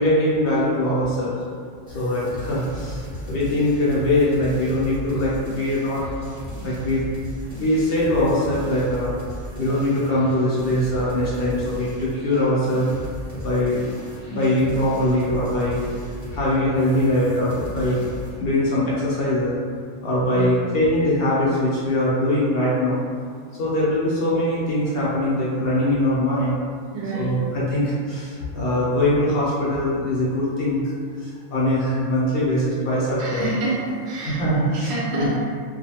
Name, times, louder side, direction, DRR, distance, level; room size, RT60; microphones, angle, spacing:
voice 1, 0.0-1.3 1.9-6.0 6.6-7.0 7.5-9.1 9.6-12.9 13.3-13.9 14.3-15.8 16.3-18.0 18.4-19.6 20.0-23.0 23.6-26.5 27.1-30.9 31.2-33.5 34.4-35.3, left 1 dB, 60° left, -7 dB, 0.7 m, -22 dB
sound 1, 1.9-18.4, equal, 35° right, 0.9 m, -36 dB
voice 2, 20.3-20.7 26.9-27.4 33.2-34.4 34.8-35.4, right 2 dB, 65° right, -5 dB, 0.8 m, -28 dB
2.4 x 2.3 x 2.8 m, 2.1 s
omnidirectional pair, 1.3 m